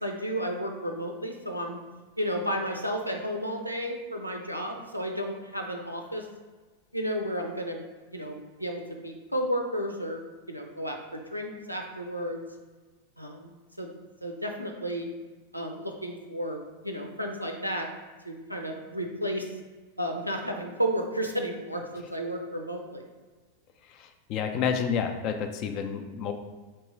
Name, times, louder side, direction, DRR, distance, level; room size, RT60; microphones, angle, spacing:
voice 1, 0.0-1.8 2.2-6.3 6.9-7.8 8.1-12.4 13.2-13.9 14.2-15.1 15.5-17.9 18.2-19.5 20.0-23.1, equal, 90° right, 2 dB, 0.4 m, -32 dB
voice 2, 24.0-26.3, left 7 dB, 40° left, 6 dB, 0.4 m, -29 dB
4.4 x 3.0 x 3.1 m, 1.3 s
figure-of-eight pair, 90°, 0 cm